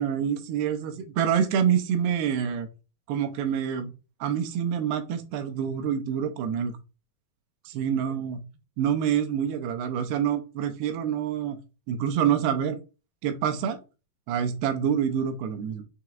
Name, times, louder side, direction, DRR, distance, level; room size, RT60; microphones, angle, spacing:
voice 1, 0.0-2.7 3.1-3.9 4.2-6.7 7.7-8.4 8.8-11.6 11.9-12.8 13.2-13.8 14.3-15.8, right 8 dB, 85° right, 7 dB, 2.6 m, -26 dB
6.7 x 3.0 x 2.3 m, 0.30 s
omnidirectional pair, 4.6 m